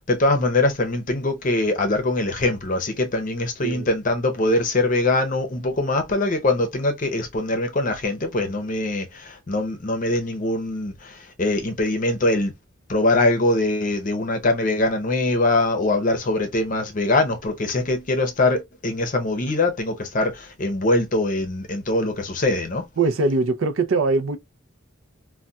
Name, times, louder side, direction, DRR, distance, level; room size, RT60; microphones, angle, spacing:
voice 1, 0.1-12.5 12.9-22.8, left 2 dB, 40° left, 0.6 m, -22 dB
voice 2, 23.0-24.4, right 3 dB, 80° right, 0.5 m, -21 dB
3.9 x 2.2 x 2.2 m
head